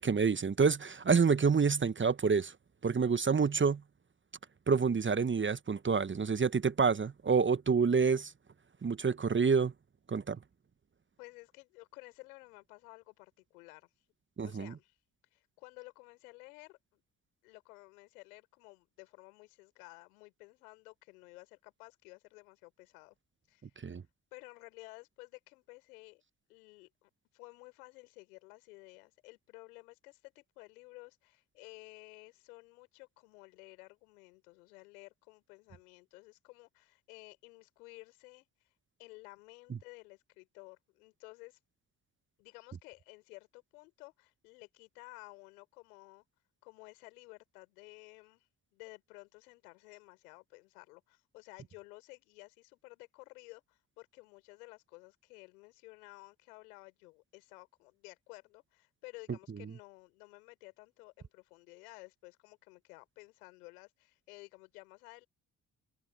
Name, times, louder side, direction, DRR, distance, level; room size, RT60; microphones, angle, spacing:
voice 1, 0.0-2.5 2.8-3.8 4.7-8.3 8.8-9.7 10.1-10.4 14.4-14.7 23.8-24.0, right 5 dB, 25° right, 1.1 m, -28 dB
voice 2, 11.2-13.9 14.4-15.0 15.3-17.0 17.4-23.1 23.5-23.9 24.3-26.2 26.5-38.7 39.0-41.6 42.4-46.2 46.6-48.5 48.7-65.3, left 24 dB, 80° left, 4.9 m, -54 dB
hypercardioid pair, 45°, 44 cm